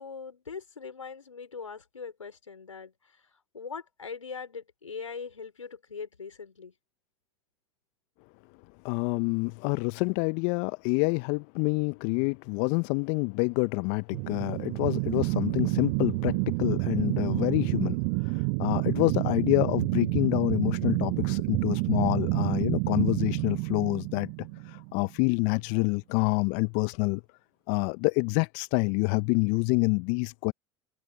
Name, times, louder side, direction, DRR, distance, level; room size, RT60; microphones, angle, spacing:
voice 1, 0.0-3.3 3.5-6.7, left 5 dB, 85° left, 4.5 m, -41 dB
voice 2, 8.8-18.0 18.2-24.3 24.6-27.2 27.7-30.5, left 34 dB, 55° left, 0.7 m, -27 dB
sound 1, 14.1-25.0, right 35 dB, 55° right, 0.7 m, -29 dB
figure-of-eight pair, 75°, 16 cm